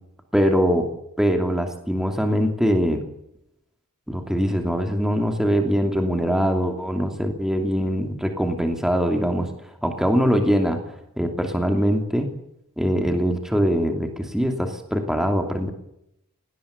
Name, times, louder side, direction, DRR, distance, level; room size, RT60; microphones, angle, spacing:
voice 1, 0.3-0.9 1.2-3.0 4.1-9.5 9.8-10.8 11.2-12.3 12.8-15.7, equal, ahead, 4 dB, 2.8 m, -22 dB
20.0 x 19.0 x 8.5 m, 0.79 s
head